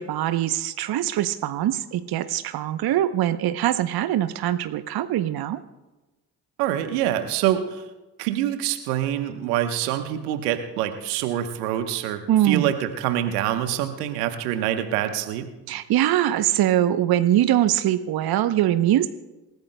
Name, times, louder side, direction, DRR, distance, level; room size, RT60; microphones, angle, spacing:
voice 1, 0.0-5.6 12.3-12.7 15.7-19.1, right 12 dB, 55° right, 12 dB, 0.8 m, -22 dB
voice 2, 6.6-7.8 8.2-15.5, right 11 dB, 80° right, 8 dB, 1.1 m, -25 dB
28.0 x 15.5 x 2.2 m, 1.1 s
hypercardioid pair, 40°, 46 cm